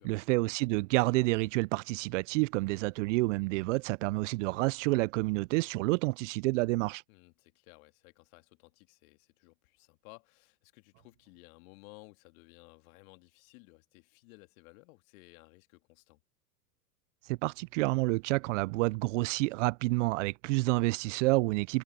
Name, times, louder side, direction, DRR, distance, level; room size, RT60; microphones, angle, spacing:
voice 1, 0.0-7.0 17.3-21.8, right 23 dB, 50° right, 0.5 m, -29 dB
voice 2, 7.1-16.2, left 26 dB, 55° left, 2.1 m, -57 dB
hypercardioid pair, 100°, 50 cm